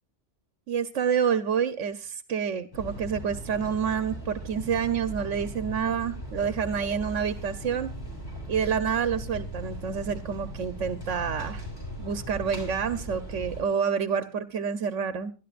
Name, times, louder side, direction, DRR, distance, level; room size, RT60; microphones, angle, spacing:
voice 1, 0.7-7.9 8.5-11.6 12.0-15.3, right 7 dB, 90° right, 12 dB, 1.2 m, -28 dB
sound 1, 2.7-13.6, right 1 dB, 20° left, 5.3 m, -38 dB
23.5 x 11.5 x 2.5 m, 0.33 s
omnidirectional pair, 1.2 m